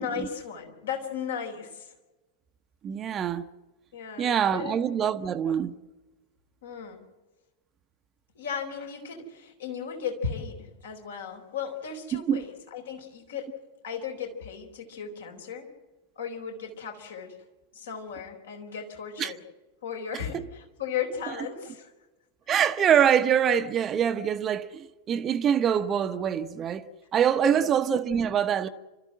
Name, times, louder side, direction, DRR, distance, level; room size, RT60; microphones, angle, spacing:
voice 1, 0.0-1.9 3.9-5.1 6.6-7.0 8.3-13.5 13.8-15.7 16.2-17.4 17.7-19.4 19.8-21.9 27.5-27.7, left 7 dB, 65° left, 4.1 m, -36 dB
voice 2, 2.8-3.5 4.2-5.7 12.1-12.4 19.2-19.3 20.3-20.4 22.5-26.8 27.1-28.7, right 8 dB, 25° right, 0.9 m, -24 dB
29.0 x 14.0 x 7.8 m
figure-of-eight pair, 90°, 0 cm